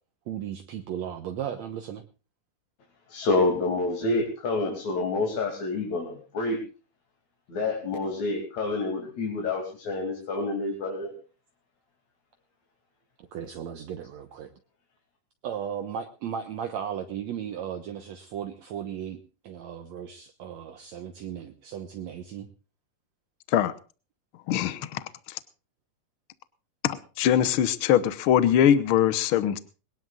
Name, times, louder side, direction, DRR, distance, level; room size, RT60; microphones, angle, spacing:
voice 1, 0.3-2.0 13.2-14.5 15.4-19.2 19.4-22.5, right 9 dB, 65° right, 6 dB, 2.1 m, -36 dB
voice 2, 3.1-6.6 7.5-11.1, left 3 dB, 55° left, -1 dB, 3.9 m, -28 dB
voice 3, 24.5-25.0 26.8-29.6, left 10 dB, 80° left, 13 dB, 1.2 m, -22 dB
21.5 x 18.5 x 2.4 m, 0.34 s
omnidirectional pair, 3.8 m